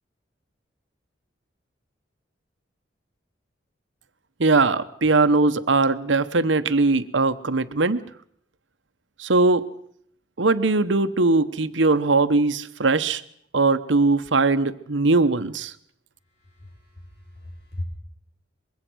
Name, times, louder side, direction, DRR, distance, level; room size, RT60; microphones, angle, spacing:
voice 1, 4.4-8.0 9.2-9.7 10.4-13.2 13.5-15.7, right 3 dB, 90° right, 12 dB, 1.1 m, -20 dB
voice 2, 16.4-17.8, left 1 dB, 65° left, 2 dB, 6.6 m, -38 dB
24.5 x 22.0 x 6.3 m, 0.66 s
head